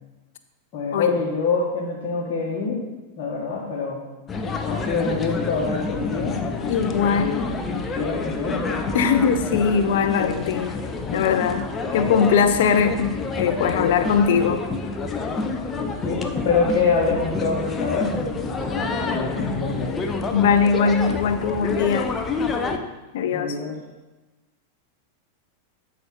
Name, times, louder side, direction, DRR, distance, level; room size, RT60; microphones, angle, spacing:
voice 1, 0.7-2.8 3.2-4.0 4.6-6.4 6.9-8.6 10.0-10.6 15.8-20.0 23.3-23.7, left 4 dB, 40° left, -5 dB, 1.6 m, -26 dB
sound 1, 4.3-22.8, left 4 dB, 20° left, 0.8 m, -28 dB
voice 2, 6.7-7.5 8.9-10.7 11.1-14.6 20.3-22.1 23.1-23.6, left 6 dB, 55° left, 10 dB, 0.7 m, -21 dB
12.0 x 5.1 x 4.5 m, 1.1 s
figure-of-eight pair, 90°, 0 cm